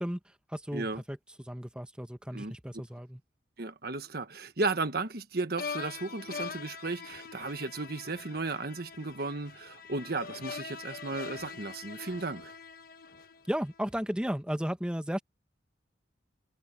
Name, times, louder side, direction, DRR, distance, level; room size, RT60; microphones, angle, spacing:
voice 1, 0.0-3.2 13.5-15.2, equal, 5° right, 1.2 m, -34 dB
voice 2, 3.6-12.5, right 3 dB, 60° right, 1.4 m, -35 dB
sound 1, 5.6-13.8, left 5 dB, 55° left, 1.3 m, -43 dB
head